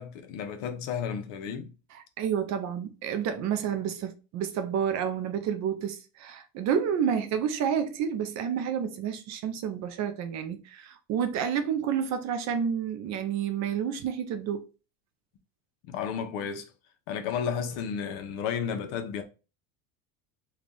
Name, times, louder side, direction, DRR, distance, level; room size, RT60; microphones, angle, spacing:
voice 1, 0.0-1.7 15.8-16.7 17.1-19.2, left 7 dB, 65° left, 0.9 m, -32 dB
voice 2, 1.9-14.7, right 8 dB, 40° right, 0.5 m, -30 dB
3.4 x 2.4 x 3.8 m
cardioid pair, 140°, 44 cm